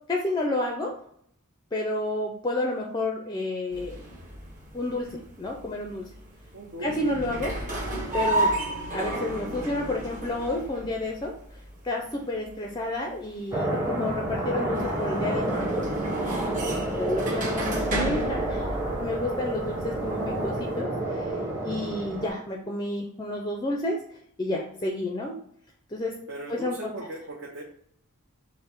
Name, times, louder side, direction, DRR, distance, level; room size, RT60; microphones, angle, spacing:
voice 1, 0.1-0.9 1.7-4.0 4.7-6.1 6.8-7.5 8.1-8.5 8.9-11.3 11.8-15.9 16.5-24.0 24.4-25.4 25.9-26.2 26.5-26.9, left 2 dB, 20° left, 1 dB, 0.4 m, -30 dB
sound 1, 3.7-20.8, right 1 dB, 35° right, 1.0 m, -33 dB
voice 2, 6.5-6.9 7.2-7.6 26.3-27.6, right 1 dB, 55° right, -2 dB, 0.7 m, -38 dB
sound 2, 13.5-22.3, right 1 dB, 10° right, 0.8 m, -29 dB
5.3 x 2.1 x 4.3 m, 0.68 s
head